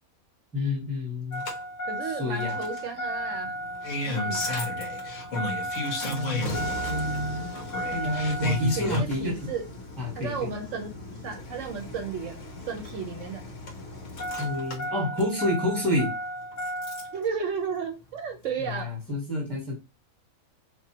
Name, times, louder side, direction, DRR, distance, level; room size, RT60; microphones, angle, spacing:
voice 1, 0.5-1.5 2.0-2.6 6.1-7.5 7.9-9.5 10.0-10.5 14.4-16.1 18.6-19.8, left 1 dB, ahead, 1.2 m, -29 dB
Engine starting, 1.3-17.2 18.5-18.6, left 1 dB, 60° left, 1.3 m, -33 dB
voice 2, 1.8-3.5 4.0-4.5 8.8-9.7 10.2-12.4 12.7-13.4 17.1-18.9, right 5 dB, 65° right, 1.0 m, -33 dB
4.6 x 2.3 x 2.8 m
omnidirectional pair, 1.5 m